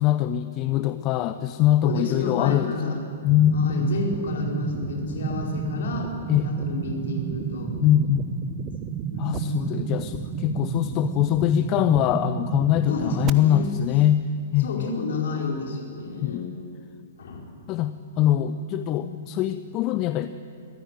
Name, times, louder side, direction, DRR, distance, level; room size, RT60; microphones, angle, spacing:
voice 1, 0.0-2.8 3.2-3.8 5.4-5.8 6.3-6.5 7.8-8.3 9.2-14.2 14.5-14.9 16.2-16.5 17.7-20.3, left 12 dB, 30° left, 11 dB, 0.6 m, -23 dB
voice 2, 1.8-3.0 3.5-6.1 6.4-7.8 9.1-9.8 12.9-13.7 14.6-16.5 17.2-17.4 18.3-18.6 18.9-19.1, left 4 dB, 60° left, 0 dB, 4.9 m, -31 dB
sound 1, 3.3-13.3, right 8 dB, 25° right, 1.1 m, -31 dB
23.5 x 15.5 x 9.2 m, 2.4 s
figure-of-eight pair, 110°, 0 cm